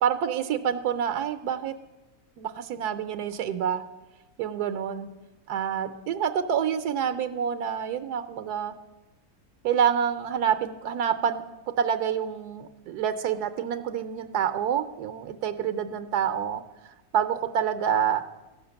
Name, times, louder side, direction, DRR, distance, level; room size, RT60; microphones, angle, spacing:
voice 1, 0.0-1.7 2.4-3.8 4.4-5.1 5.5-8.7 9.6-11.4 11.8-16.6 17.1-18.2, right 8 dB, 80° right, 10 dB, 1.2 m, -27 dB
14.5 x 5.8 x 6.9 m, 1.1 s
omnidirectional pair, 1.7 m